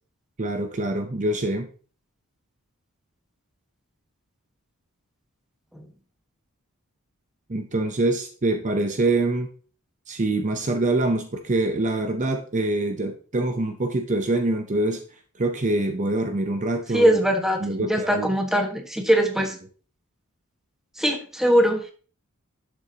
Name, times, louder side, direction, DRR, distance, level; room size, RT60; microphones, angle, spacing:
voice 1, 0.4-1.7 7.5-9.5 10.1-15.0 15.4-17.1 17.6-18.3, right 2 dB, 35° right, 6 dB, 0.7 m, -25 dB
voice 2, 16.9-19.5 21.0-21.8, equal, ahead, 3 dB, 1.4 m, -21 dB
12.0 x 7.0 x 2.9 m, 0.42 s
head